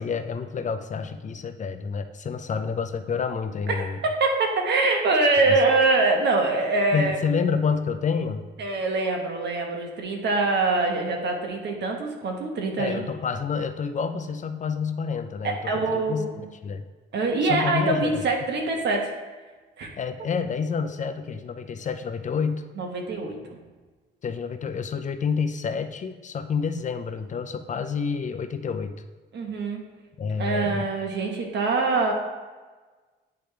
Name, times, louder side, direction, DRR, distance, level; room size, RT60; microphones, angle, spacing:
voice 1, 0.0-4.0 5.5-5.6 6.9-8.5 12.8-16.3 16.6-16.8 17.4-18.2 20.0-22.7 24.2-28.9 30.2-30.9, left 6 dB, 40° left, 8 dB, 0.5 m, -28 dB
voice 2, 3.7-7.2 8.6-13.0 15.4-16.4 17.1-19.1 19.8-19.9 22.8-23.6 29.3-29.8 30.4-32.1, right 3 dB, 60° right, 2 dB, 1.3 m, -24 dB
9.2 x 3.5 x 3.4 m, 1.3 s
cardioid pair, 90°, 20 cm